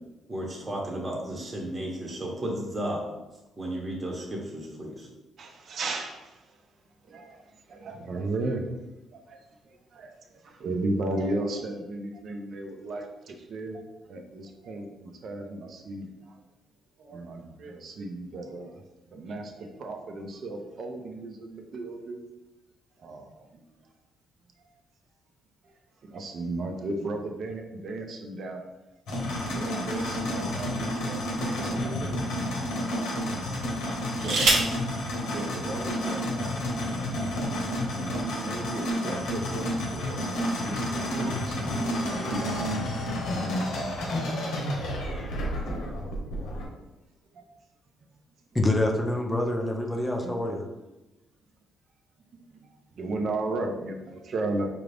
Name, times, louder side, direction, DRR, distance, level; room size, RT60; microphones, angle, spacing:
voice 1, 0.3-3.0 3.6-5.1, right 1 dB, 25° right, -2 dB, 1.0 m, -33 dB
voice 2, 5.4-6.7 7.0-8.7 9.1-16.4 17.0-18.8 19.1-22.2 23.0-23.6 24.6-24.7 25.6-25.7 26.0-28.6 29.1-32.2 32.7-33.1 33.9-34.8 35.3-36.6 37.0-37.1 37.3-37.7 38.0-41.7 42.2-43.0 43.7-44.1 45.9-46.0 47.3-47.5 50.2-50.4 52.3-54.7, right 2 dB, 60° right, 3 dB, 0.6 m, -35 dB
sound 1, 29.1-46.7, left 1 dB, 85° left, 1.0 m, -30 dB
sound 2, 30.1-31.3 32.0-32.1 33.8-34.8 36.0-36.1 36.4-36.8, right 2 dB, 85° right, 1.0 m, -27 dB
Bowed string instrument, 40.6-45.1 45.6-45.7, left 4 dB, 65° left, 0.5 m, -42 dB
voice 3, 48.5-50.6, left 1 dB, 10° left, 2 dB, 0.6 m, -26 dB
4.6 x 2.6 x 3.4 m, 1.0 s
cardioid pair, 90°, 0 cm